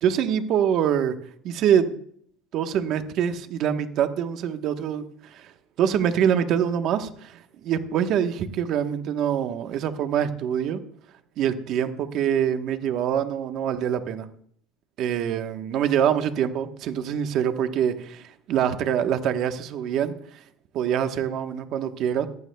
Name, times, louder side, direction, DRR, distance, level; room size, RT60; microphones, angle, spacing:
voice 1, 0.0-1.1 1.4-2.0 2.5-5.5 5.8-10.8 11.4-14.3 15.0-20.4 20.7-22.3, right 9 dB, 55° right, 7 dB, 1.2 m, -25 dB
18.0 x 14.5 x 2.3 m, 0.64 s
supercardioid pair, 120°, 0 cm